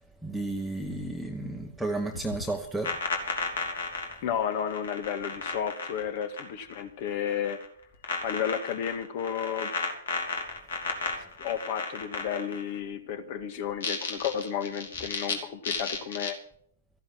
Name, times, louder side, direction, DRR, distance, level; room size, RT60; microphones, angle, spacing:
voice 1, 0.2-2.9, right 2 dB, ahead, 1 dB, 1.2 m, -32 dB
sound 1, 2.1-6.8 7.1-7.7 8.0-12.8 13.7-15.3 15.6-16.3, left 4 dB, 70° left, 3.1 m, -33 dB
voice 2, 4.2-7.6 8.2-9.7 11.4-16.4, left 8 dB, 45° left, 10 dB, 1.8 m, -32 dB
14.0 x 11.0 x 5.9 m, 0.62 s
hypercardioid pair, 120°, 0 cm